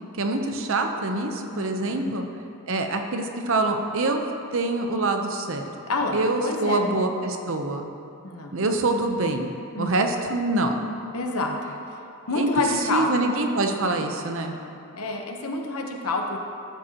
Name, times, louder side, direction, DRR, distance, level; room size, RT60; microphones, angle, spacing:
voice 1, 0.2-2.2 2.7-4.2 4.5-5.7 6.1-7.9 8.5-9.5 9.8-10.8 12.3-12.6 12.9-14.6, right 2 dB, 60° right, 5 dB, 0.7 m, -25 dB
voice 2, 1.5-2.1 5.9-6.9 8.2-8.6 9.7-9.9 11.1-11.6 12.3-13.3 14.5-16.4, left 2 dB, 85° left, 2 dB, 1.0 m, -28 dB
13.5 x 7.7 x 2.9 m, 2.6 s
head